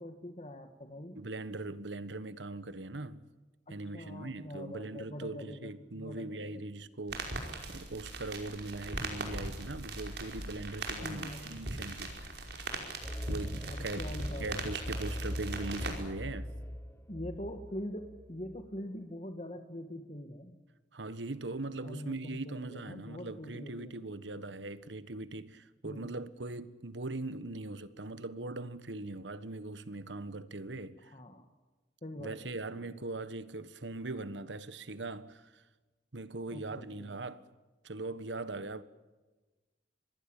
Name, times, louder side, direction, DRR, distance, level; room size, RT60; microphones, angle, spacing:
voice 1, 0.0-1.2 3.7-6.6 11.0-11.7 13.7-14.8 17.1-20.6 21.8-24.1 25.8-26.1 31.1-31.5 32.0-32.8 36.5-37.1, left 1 dB, 35° left, 1.6 m, -44 dB
voice 2, 1.1-3.2 3.7-7.4 7.7-12.3 13.3-14.0 14.4-16.5 20.9-31.0 32.2-35.6 36.1-37.4 37.8-38.8, right 2 dB, 85° right, 1.4 m, -40 dB
sound 1, 7.1-16.0, right 2 dB, 65° right, 5.3 m, -40 dB
sound 2, 13.0-18.6, equal, 15° left, 1.4 m, -40 dB
25.5 x 20.5 x 9.0 m
head